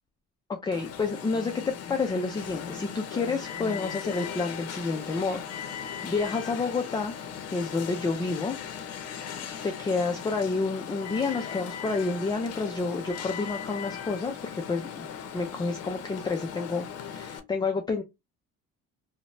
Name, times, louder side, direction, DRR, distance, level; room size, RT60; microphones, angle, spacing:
voice 1, 0.5-7.1 7.5-8.6 9.6-15.1 15.3-18.0, left 4 dB, 15° left, 0.4 m, -29 dB
Alarm, 0.7-17.4, left 8 dB, 55° left, 0.6 m, -38 dB
3.0 x 2.1 x 2.5 m
cardioid pair, 115°, 30 cm